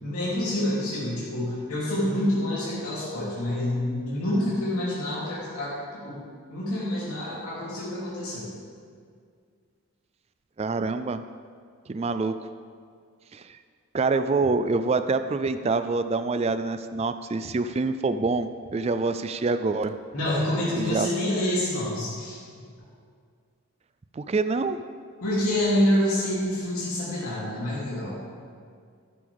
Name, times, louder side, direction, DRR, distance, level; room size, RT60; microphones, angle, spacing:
voice 1, 0.0-5.8 6.0-6.2 6.5-8.5 20.1-22.4 25.2-28.2, left 1 dB, 80° left, -8 dB, 3.0 m, -27 dB
voice 2, 10.6-11.2 11.9-12.4 13.3-13.6 13.9-19.9 20.8-21.1 24.1-24.8, right 3 dB, 30° right, 11 dB, 0.3 m, -26 dB
13.5 x 12.0 x 3.5 m, 2.1 s
head